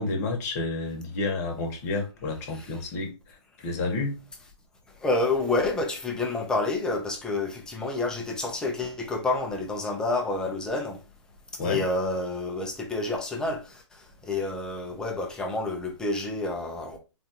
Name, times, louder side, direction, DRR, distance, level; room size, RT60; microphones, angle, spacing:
voice 1, 0.0-4.1 11.6-11.8, left 3 dB, 35° left, 1.0 m, -30 dB
voice 2, 5.0-11.0 11.6-17.0, left 2 dB, 5° left, 0.4 m, -29 dB
3.9 x 2.3 x 2.8 m
hypercardioid pair, 150°, 15 cm